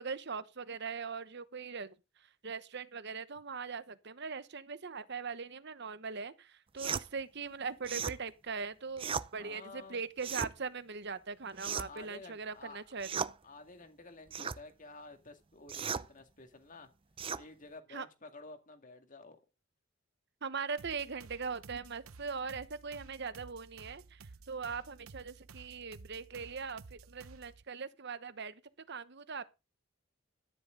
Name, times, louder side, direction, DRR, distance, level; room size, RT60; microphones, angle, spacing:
voice 1, 0.0-13.3 17.9-18.1 20.4-28.6 28.9-29.4, right 5 dB, 55° right, 1.0 m, -41 dB
sound 1, 6.8-7.1 7.8-8.2 9.0-9.3 10.2-10.5 11.6-12.0 13.0-13.3 14.3-14.6 15.7-16.1 17.2-17.4, right 6 dB, 25° right, 0.5 m, -36 dB
voice 2, 9.4-10.0 11.8-12.8 13.4-16.9 17.4-19.4, left 3 dB, 40° left, 2.2 m, -51 dB
sound 2, 20.8-27.6, right 4 dB, 90° right, 0.8 m, -54 dB
13.0 x 11.0 x 3.8 m
head